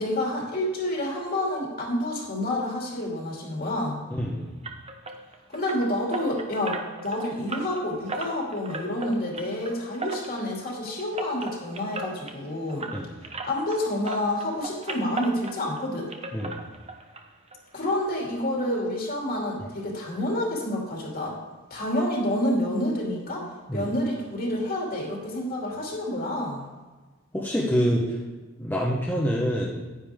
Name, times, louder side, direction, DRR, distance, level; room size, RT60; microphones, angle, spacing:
voice 1, 0.0-4.0 5.5-6.8 7.0-12.9 13.4-16.1 17.7-21.3 21.7-23.5 23.7-26.7, left 1 dB, 45° left, -2 dB, 2.8 m, -28 dB
voice 2, 4.1-4.5 12.9-13.2 16.3-16.6 23.7-23.9 27.3-28.2 28.6-29.8, equal, 10° left, -5 dB, 1.1 m, -26 dB
sound 1, 4.6-13.8 14.0-17.2 17.5-17.6 18.0-18.1 18.5-18.6, right 3 dB, 30° right, 0.9 m, -37 dB
9.9 x 9.8 x 3.7 m, 1.3 s
head